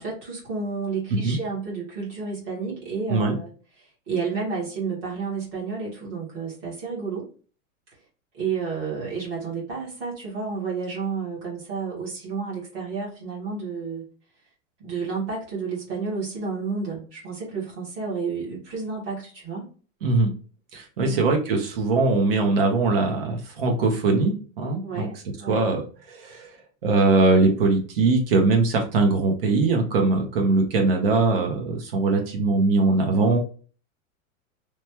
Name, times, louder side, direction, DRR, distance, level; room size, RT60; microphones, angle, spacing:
voice 1, 0.0-3.5 4.1-7.3 8.3-14.0 14.8-19.6 21.0-21.3 24.8-25.6, right 5 dB, 20° right, -5 dB, 1.0 m, -31 dB
voice 2, 20.0-20.3 20.7-25.1 25.5-26.5 26.8-33.4, right 3 dB, 45° right, 3 dB, 0.8 m, -21 dB
3.0 x 2.2 x 2.8 m, 0.39 s
supercardioid pair, 180°, 41 cm